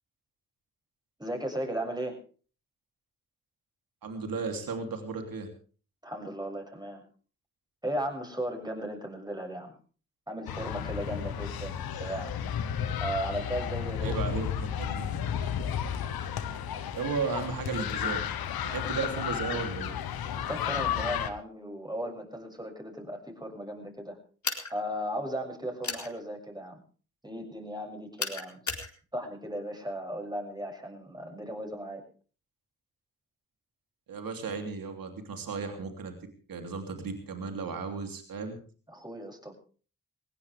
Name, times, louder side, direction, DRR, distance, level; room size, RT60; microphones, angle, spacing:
voice 1, 1.2-2.2 6.0-7.0 7.8-9.8 10.3-12.4 13.0-14.2 20.3-24.2 24.7-26.8 27.2-28.7 29.1-32.0 38.9-39.5, equal, 10° right, 2 dB, 7.0 m, -36 dB
voice 2, 4.0-5.5 14.0-15.1 16.9-18.3 18.6-19.9 34.1-36.2 36.5-38.6, right 4 dB, 70° right, 5 dB, 3.2 m, -35 dB
sound 1, 10.5-21.3, left 9 dB, 80° left, 1.3 m, -33 dB
sound 2, 24.4-24.7 25.8-26.1 28.2-28.9, left 4 dB, 50° left, 4.2 m, -33 dB
20.0 x 17.0 x 3.5 m, 0.39 s
supercardioid pair, 40°, 36 cm